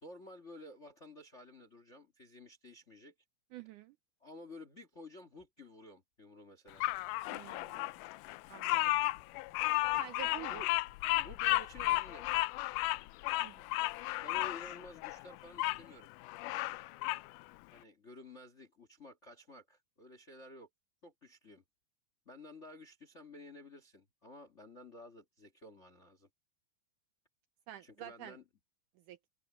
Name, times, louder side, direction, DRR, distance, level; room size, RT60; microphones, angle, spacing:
voice 1, 0.0-3.1 4.2-6.9 10.5-10.7 11.1-12.3 14.2-16.1 17.7-20.7 21.0-21.6 22.2-26.3 27.8-28.4, left 1 dB, 40° left, 1.0 m, -52 dB
voice 2, 3.5-4.0 7.3-7.9 8.5-9.0 10.0-10.6 13.4-13.8 27.7-28.4 29.1-29.2, right 13 dB, 80° right, 1.9 m, -49 dB
Bird vocalization bird call bird song, 6.8-15.8 16.2-17.3, left 19 dB, 85° left, 1.8 m, -33 dB
omnidirectional pair, 4.2 m